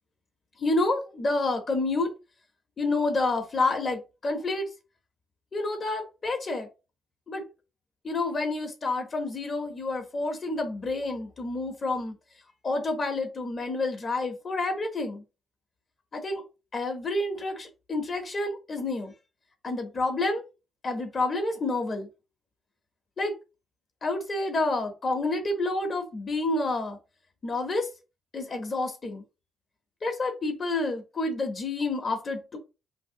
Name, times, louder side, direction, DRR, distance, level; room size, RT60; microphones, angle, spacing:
voice 1, 0.6-2.1 2.8-4.6 5.5-6.7 7.3-7.5 8.0-12.1 12.6-15.2 16.1-16.4 16.7-19.1 19.6-20.4 20.8-22.1 23.2-23.3 24.0-27.0 27.4-27.9 28.3-29.2 30.0-32.6, left 2 dB, 40° left, 4 dB, 0.8 m, -29 dB
2.8 x 2.7 x 2.7 m, 0.29 s
cardioid pair, 90°, 0 cm